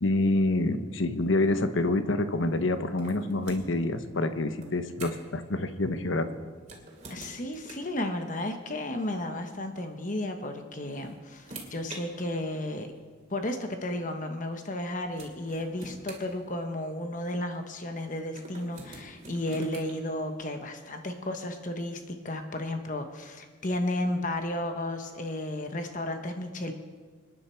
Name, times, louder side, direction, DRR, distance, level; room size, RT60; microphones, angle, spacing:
voice 1, 0.0-6.3, left 2 dB, 80° left, 9 dB, 1.0 m, -27 dB
sound 1, 3.0-3.9 4.6-5.4 6.6-8.0 9.3-9.4 10.6-12.0 13.0-13.1 14.7-14.8 15.2-17.0 18.3-19.9, right 2 dB, 35° right, 2.5 m, -46 dB
voice 2, 7.1-12.9 13.3-26.7, left 1 dB, 40° left, 6 dB, 1.1 m, -33 dB
25.5 x 10.0 x 4.5 m, 1.5 s
head